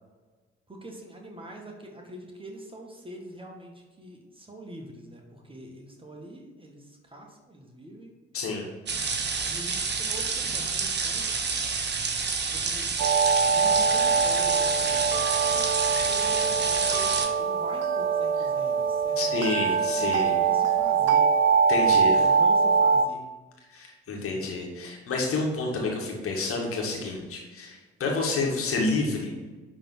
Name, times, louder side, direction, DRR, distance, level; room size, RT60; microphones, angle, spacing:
voice 1, 0.7-8.5 9.3-11.4 12.4-13.0 13.4-19.9 20.3-21.3 22.1-23.3 24.2-24.5, right 1 dB, 15° right, 1 dB, 1.8 m, -44 dB
voice 2, 8.3-8.7 15.9-16.1 19.2-20.3 21.7-22.1 23.7-29.3, left 3 dB, 45° left, -1 dB, 2.1 m, -29 dB
sound 1, 8.9-17.3, right 5 dB, 35° right, 1.2 m, -29 dB
sound 2, 13.0-23.1, right 6 dB, 55° right, 0.6 m, -23 dB
11.0 x 3.7 x 4.6 m, 1.3 s
figure-of-eight pair, 45°, 31 cm